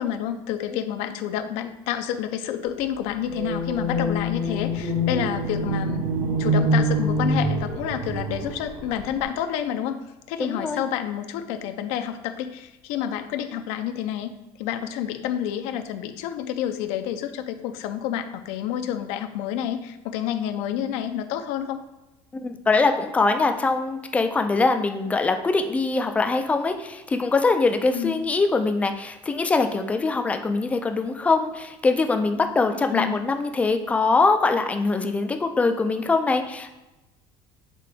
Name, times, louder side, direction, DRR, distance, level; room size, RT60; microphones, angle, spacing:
voice 1, 0.0-6.1 6.4-10.0 10.3-14.3 14.6-21.8 27.9-28.1 32.7-33.2, left 10 dB, 70° left, 8 dB, 0.5 m, -29 dB
sound 1, 3.2-9.2, right 1 dB, 70° right, 1.3 m, -25 dB
voice 2, 10.4-10.8 22.3-36.7, left 3 dB, 10° left, 6 dB, 0.3 m, -23 dB
7.6 x 3.7 x 3.4 m, 1.0 s
cardioid pair, 175°, 11 cm